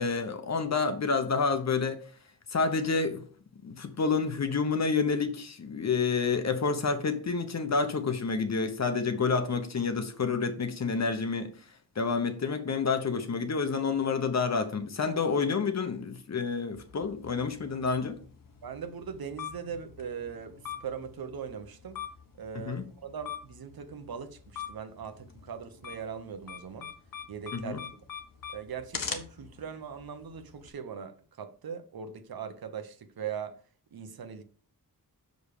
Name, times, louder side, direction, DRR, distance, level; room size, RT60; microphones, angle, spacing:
voice 1, 0.0-2.0 2.5-3.2 3.6-11.5 12.0-18.2 22.5-22.8 27.5-27.8, left 4 dB, 45° left, 1.1 m, -29 dB
sound 1, 16.7-30.7, left 7 dB, 60° left, 1.3 m, -44 dB
voice 2, 18.6-22.0 22.4-26.9 27.3-27.8 28.5-33.6 33.9-34.4, right 7 dB, 75° right, 1.0 m, -40 dB
7.0 x 5.3 x 4.9 m
wide cardioid pair, 155°, 36 cm